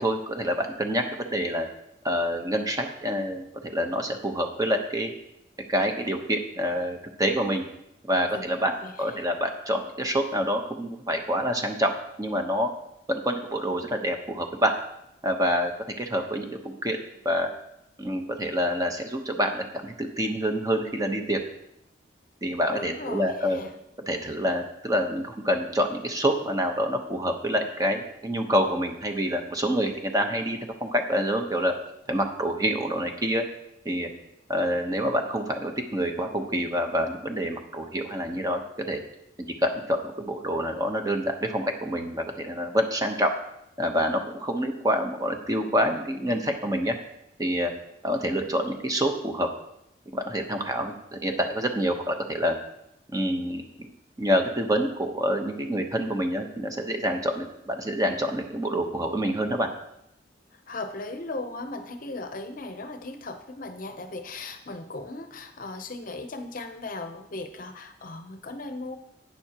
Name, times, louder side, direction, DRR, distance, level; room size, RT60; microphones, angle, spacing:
voice 1, 0.0-1.7 2.0-5.1 5.7-7.6 8.0-8.7 9.0-11.9 12.2-12.7 13.1-14.7 15.2-15.7 16.0-17.0 17.2-17.5 18.0-21.4 22.4-23.6 24.1-31.7 32.1-33.4 33.8-34.1 34.5-38.6 38.9-39.0 39.6-43.3 43.8-46.9 47.4-47.7 48.0-49.5 50.1-52.6 53.1-53.9 54.2-59.7, equal, 20° right, 4 dB, 0.9 m, -27 dB
voice 2, 8.3-9.2 22.7-23.7 60.7-69.0, left 2 dB, 50° left, 7 dB, 0.7 m, -37 dB
11.5 x 9.1 x 2.9 m, 0.80 s
head